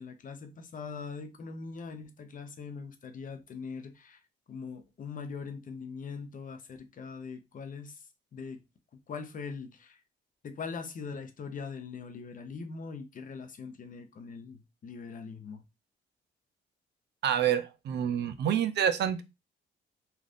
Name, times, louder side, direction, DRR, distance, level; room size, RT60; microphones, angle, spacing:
voice 1, 0.0-4.2 4.5-8.0 8.3-8.6 9.1-10.0 10.4-15.6, left 5 dB, 45° left, 0.6 m, -41 dB
voice 2, 17.2-19.2, right 9 dB, 60° right, 0.5 m, -27 dB
3.3 x 2.5 x 2.5 m
cardioid pair, 90°, 20 cm